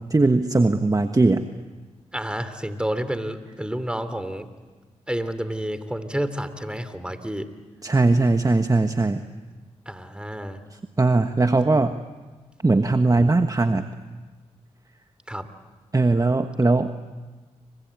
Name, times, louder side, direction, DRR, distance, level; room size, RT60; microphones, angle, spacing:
voice 1, 0.1-1.4 7.8-9.2 10.7-12.0 12.6-13.9 15.9-16.9, right 3 dB, 25° right, 8 dB, 1.3 m, -20 dB
voice 2, 2.1-4.5 5.1-7.5 9.9-10.6 15.3-15.5, right 1 dB, 5° right, 11 dB, 3.2 m, -29 dB
29.5 x 23.5 x 8.5 m, 1.3 s
supercardioid pair, 45°, 13 cm